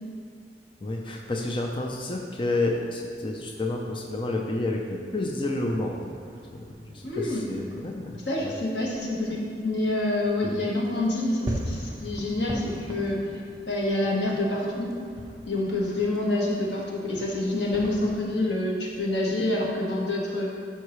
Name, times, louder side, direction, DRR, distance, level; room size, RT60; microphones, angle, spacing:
voice 1, 0.8-6.1 6.5-8.5 10.4-10.5, left 2 dB, 30° left, 0 dB, 0.6 m, -30 dB
sound 1, 5.5-18.2, equal, 25° right, 1.0 m, -41 dB
voice 2, 7.0-7.4 8.3-13.2 13.7-15.0 15.5-20.6, left 1 dB, 80° left, -3 dB, 1.6 m, -27 dB
12.5 x 5.8 x 3.2 m, 2.2 s
head